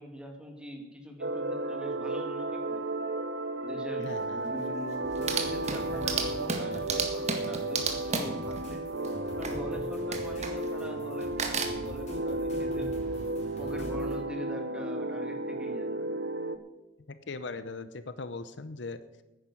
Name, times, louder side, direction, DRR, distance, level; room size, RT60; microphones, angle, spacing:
voice 1, 0.0-2.9 3.6-8.9 9.4-12.9 13.6-16.2, equal, 5° right, 2 dB, 2.3 m, -43 dB
sound 1, 1.2-16.6, right 2 dB, 75° right, 1.0 m, -33 dB
voice 2, 4.0-4.4 17.1-19.0, left 3 dB, 70° left, 12 dB, 0.8 m, -39 dB
sound 2, 4.1-4.2 4.5-4.6 4.9-9.6 10.1-10.8 11.2-11.7, right 4 dB, 35° right, 1.7 m, -33 dB
sound 3, 5.0-14.1, left 1 dB, 40° left, 5.0 m, -45 dB
10.5 x 10.0 x 8.4 m, 1.1 s
head